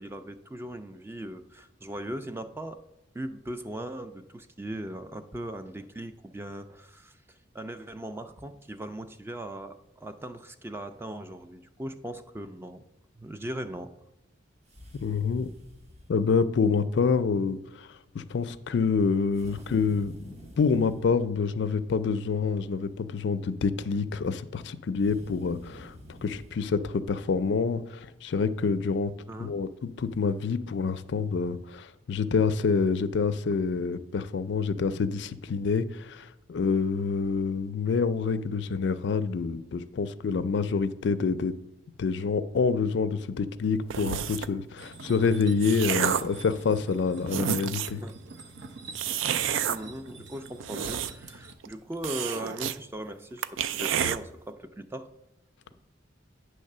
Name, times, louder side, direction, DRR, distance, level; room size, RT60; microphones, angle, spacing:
voice 1, 0.0-2.8 3.1-12.8 13.1-13.9 29.3-29.6 47.4-47.5 47.9-48.2 49.7-55.1, right 1 dB, 10° right, 0.4 m, -39 dB
sound 1, 14.6-16.2 19.3-21.1 25.0-26.6, equal, 35° right, 0.9 m, -48 dB
voice 2, 15.0-15.5 16.1-29.1 29.4-41.6 42.0-48.0, left 5 dB, 65° left, 0.4 m, -27 dB
sound 2, 43.9-44.6 45.2-46.4 46.9-47.0 47.3-48.0 48.9-49.8 50.5-51.4 51.6-51.7 52.0-52.8 53.1-53.2 53.4-54.2, right 9 dB, 90° right, 0.3 m, -29 dB
sound 3, 44.8-51.5, right 3 dB, 65° right, 0.7 m, -46 dB
8.7 x 3.3 x 6.5 m
head